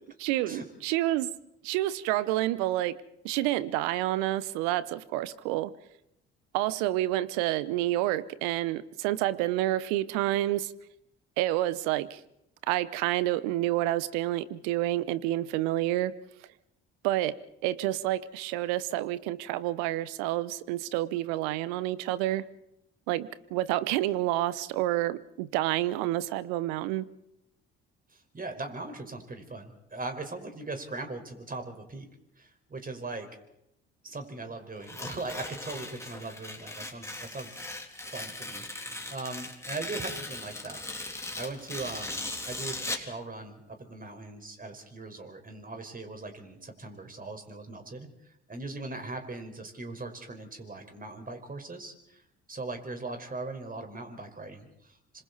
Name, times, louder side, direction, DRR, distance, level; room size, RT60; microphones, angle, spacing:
voice 1, 0.2-1.3 1.6-3.0 3.2-5.7 6.5-10.7 11.4-12.2 12.7-16.1 17.0-17.4 17.6-22.5 23.1-27.1, right 15 dB, 75° right, 17 dB, 1.0 m, -29 dB
voice 2, 28.1-32.1 32.4-33.3 34.0-37.6 38.1-40.8 41.4-48.1 48.5-52.2 52.5-55.2, right 3 dB, 30° right, 5 dB, 4.8 m, -40 dB
Tearing, 34.8-43.1, left 2 dB, 10° left, 3.2 m, -38 dB
27.5 x 26.0 x 4.2 m, 0.80 s
hypercardioid pair, 55°, 30 cm